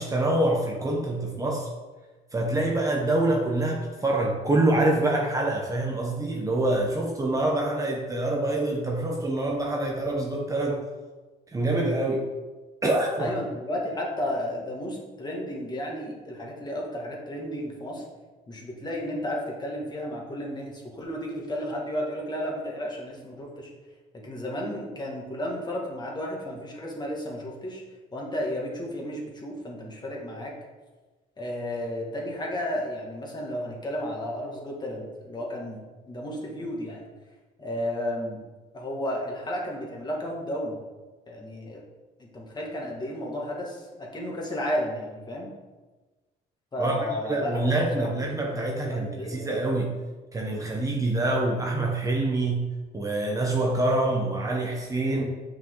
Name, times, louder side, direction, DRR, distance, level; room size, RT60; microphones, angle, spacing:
voice 1, 0.0-1.7 2.3-10.8 11.5-12.3 12.8-13.3 46.8-50.0 50.3-52.7 52.9-55.2, right 2 dB, 20° right, 0 dB, 1.0 m, -26 dB
voice 2, 13.2-18.0 18.5-23.7 24.1-27.8 28.1-30.5 31.4-35.8 36.1-37.0 37.6-38.4 38.7-40.8 41.3-41.8 42.2-45.5 46.7-48.1 48.5-49.5, left 1 dB, 25° left, -2 dB, 2.1 m, -33 dB
7.7 x 5.7 x 3.9 m, 1.2 s
cardioid pair, 110°, 17 cm